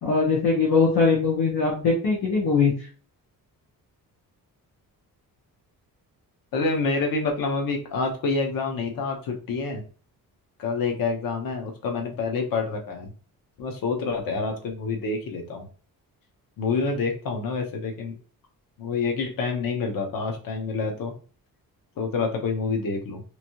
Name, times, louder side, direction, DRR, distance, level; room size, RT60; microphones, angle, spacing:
voice 1, 0.0-2.7, left 4 dB, 90° left, -4 dB, 1.2 m, -21 dB
voice 2, 6.5-9.8 10.6-13.1 13.6-15.7 16.6-18.1 18.8-21.1 22.0-23.2, left 4 dB, 70° left, 4 dB, 0.9 m, -27 dB
3.1 x 2.6 x 2.8 m, 0.38 s
wide cardioid pair, 160°, 36 cm